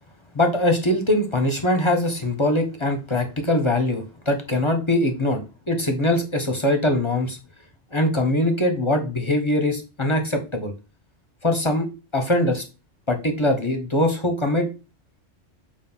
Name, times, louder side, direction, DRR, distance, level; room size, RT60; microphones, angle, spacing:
voice 1, 0.3-7.4 7.9-10.7 11.4-12.6 13.1-14.7, left 1 dB, 25° left, 5 dB, 0.8 m, -22 dB
6.9 x 2.5 x 5.4 m, 0.30 s
omnidirectional pair, 1.2 m